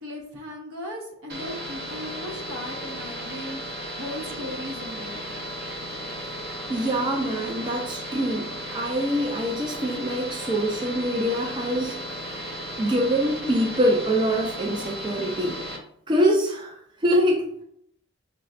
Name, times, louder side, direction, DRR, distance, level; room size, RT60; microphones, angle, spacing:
voice 1, 0.0-5.5, left 1 dB, 85° right, 0 dB, 1.1 m, -37 dB
sound 1, 1.3-15.8, equal, 50° right, 0.7 m, -35 dB
voice 2, 6.7-12.0 12.8-15.6 16.1-16.7 17.0-17.5, equal, 20° right, 1 dB, 0.3 m, -24 dB
5.6 x 2.2 x 2.5 m, 0.70 s
head